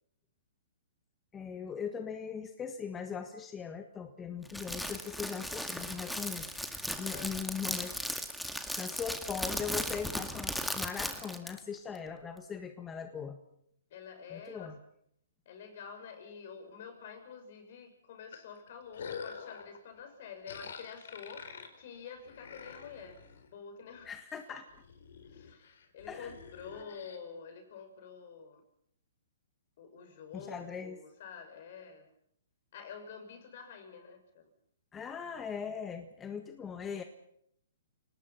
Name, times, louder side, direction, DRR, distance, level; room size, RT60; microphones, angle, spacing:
voice 1, 1.3-6.5 6.7-8.0 8.8-13.4 14.3-14.8 24.0-24.6 26.1-26.3 26.7-26.9 30.3-31.0 34.9-37.0, left 7 dB, 15° left, 6 dB, 1.6 m, -40 dB
Crackle, 4.5-11.6, equal, ahead, 2.0 m, -37 dB
voice 2, 13.9-14.7 15.4-23.2 23.5-24.1 24.5-24.6 25.2-28.6 29.8-32.1 32.7-34.4, left 6 dB, 55° left, 6 dB, 6.6 m, -48 dB
sound 1, 18.3-19.8 20.5-23.5 23.9-24.4 24.7-27.2, left 6 dB, 70° left, 4.3 m, -47 dB
30.0 x 19.0 x 5.9 m, 0.70 s
hypercardioid pair, 135°, 0 cm